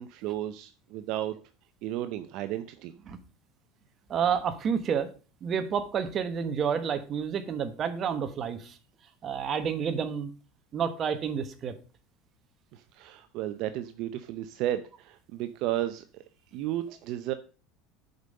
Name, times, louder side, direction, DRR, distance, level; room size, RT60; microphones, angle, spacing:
voice 1, 0.0-1.3 1.8-2.9 12.7-16.0 16.5-17.3, right 13 dB, 55° right, 11 dB, 0.6 m, -33 dB
voice 2, 4.1-5.1 5.4-8.8 9.2-10.3 10.7-11.7, right 7 dB, 30° right, 9 dB, 1.2 m, -29 dB
8.0 x 5.3 x 6.5 m, 0.35 s
cardioid pair, 145°, 0 cm